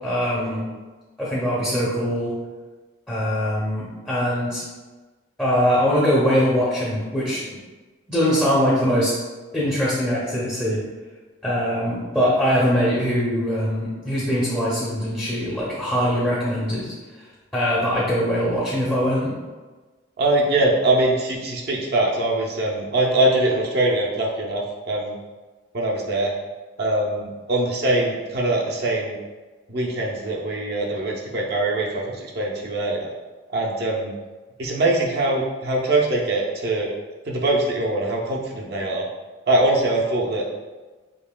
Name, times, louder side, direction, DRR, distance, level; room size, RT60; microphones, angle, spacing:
voice 1, 0.0-0.6 1.2-2.3 3.1-4.6 5.4-7.4 8.1-9.1 9.5-10.8 11.4-16.9 17.5-19.3, equal, 10° left, -7 dB, 0.6 m, -22 dB
voice 2, 20.2-25.2 25.7-26.3 26.8-29.2 29.7-33.1 33.5-34.1 34.6-36.9 37.2-39.1 39.5-40.4, right 2 dB, 55° right, -2 dB, 0.5 m, -22 dB
5.2 x 2.8 x 2.2 m, 1.3 s
head